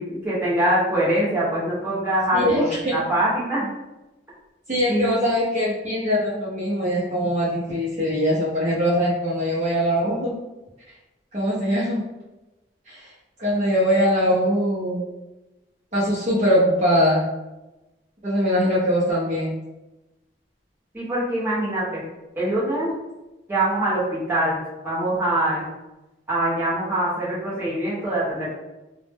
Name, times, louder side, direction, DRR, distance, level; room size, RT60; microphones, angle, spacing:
voice 1, 0.0-3.7 4.9-5.2 20.9-22.0 22.4-22.9 23.5-24.6 24.8-25.7 26.3-28.5, right 1 dB, 10° right, -9 dB, 0.8 m, -23 dB
voice 2, 2.3-3.0 4.7-10.4 11.3-12.1 12.9-13.0 13.4-15.1 15.9-17.2 18.2-19.5, equal, 40° right, -8 dB, 0.6 m, -22 dB
2.1 x 2.0 x 3.3 m, 1.0 s
head